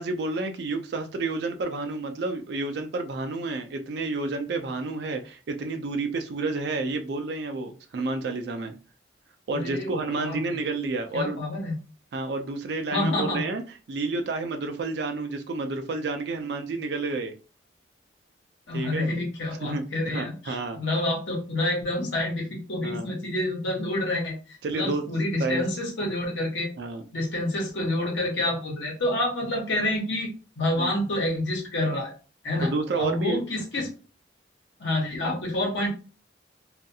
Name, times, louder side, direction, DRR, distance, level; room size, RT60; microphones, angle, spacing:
voice 1, 0.0-8.7 9.5-11.4 12.1-13.6 13.9-17.3 18.7-19.1 19.6-19.8 20.1-20.8 22.8-23.1 24.6-25.0 25.4-25.6 26.8-27.0 30.8-31.0 32.6-33.4, right 3 dB, 65° right, 6 dB, 0.3 m, -30 dB
voice 2, 9.5-10.6 11.1-11.8 12.9-13.4 18.7-24.4 24.7-26.7 27.1-30.3 30.6-32.1 32.4-33.9 34.8-35.9, left 1 dB, 80° left, -1 dB, 1.1 m, -28 dB
2.4 x 2.3 x 2.6 m, 0.34 s
head